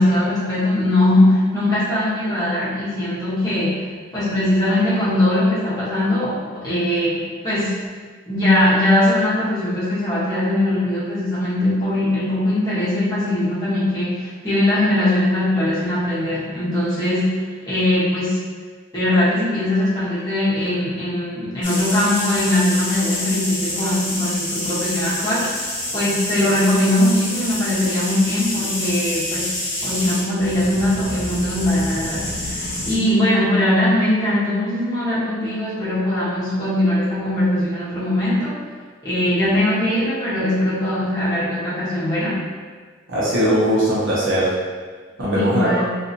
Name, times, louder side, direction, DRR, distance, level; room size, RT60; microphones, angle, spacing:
voice 1, 0.0-7.7 8.3-18.4 18.9-29.6 29.8-38.6 39.0-42.4 45.2-45.8, left 1 dB, 20° left, -11 dB, 0.9 m, -20 dB
sound 1, 21.6-33.0, left 1 dB, 65° left, 0.7 m, -27 dB
voice 2, 43.1-44.5 45.2-45.8, right 1 dB, 70° right, -8 dB, 0.9 m, -19 dB
2.7 x 2.5 x 2.6 m, 1.5 s
head